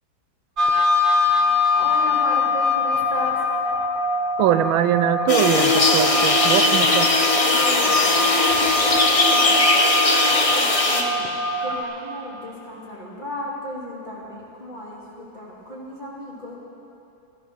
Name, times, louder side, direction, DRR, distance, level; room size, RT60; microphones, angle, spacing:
sound 1, 0.6-11.8, left 3 dB, 45° right, 0.7 m, -23 dB
voice 1, 1.7-3.4 7.4-9.9 10.2-11.2 11.6-16.5, left 1 dB, 25° left, -6 dB, 2.9 m, -34 dB
voice 2, 4.4-7.1, right 11 dB, 90° right, 11 dB, 1.4 m, -22 dB
sound 2, 5.3-11.0, left 2 dB, 65° left, 0.3 m, -19 dB
14.0 x 14.0 x 6.3 m, 2.7 s
omnidirectional pair, 2.2 m